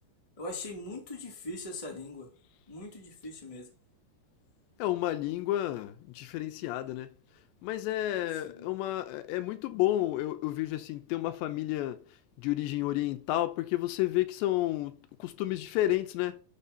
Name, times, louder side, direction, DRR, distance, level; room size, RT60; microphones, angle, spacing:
voice 1, 0.4-2.3 2.7-3.7 8.4-8.7, left 2 dB, 10° left, 1.8 m, -41 dB
voice 2, 4.8-7.1 7.6-16.4, left 15 dB, 85° left, 3.0 m, -31 dB
12.0 x 7.2 x 2.9 m
omnidirectional pair, 5.1 m